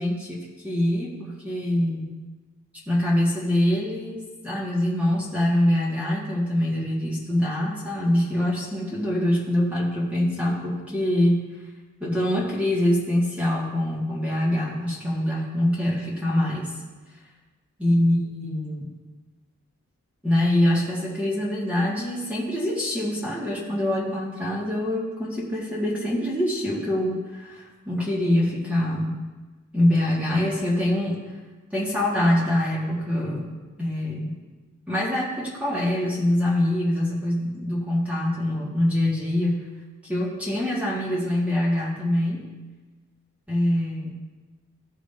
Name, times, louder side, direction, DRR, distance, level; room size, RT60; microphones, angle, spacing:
voice 1, 0.0-2.0 2.9-11.4 12.0-16.7 17.8-18.9 20.2-29.2 29.7-31.2 31.7-33.4 33.8-34.4 34.9-39.6 40.1-42.5 43.5-44.1, left 1 dB, 5° right, -6 dB, 1.6 m, -24 dB
16.5 x 6.5 x 2.6 m, 1.3 s
head